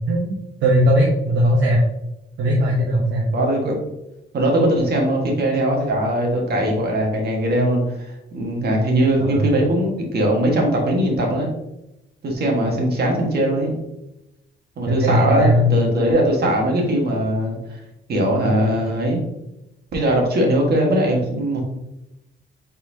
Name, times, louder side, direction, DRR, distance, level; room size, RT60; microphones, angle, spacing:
voice 1, 0.1-1.8 2.4-3.3 9.2-9.5 14.9-15.7, equal, 70° right, -3 dB, 0.9 m, -18 dB
voice 2, 3.3-3.8 4.3-11.5 12.2-13.8 14.8-17.8 18.1-19.2 19.9-21.6, right 1 dB, 55° right, 0 dB, 1.5 m, -20 dB
4.4 x 4.2 x 2.7 m, 0.90 s
cardioid pair, 90°, 20 cm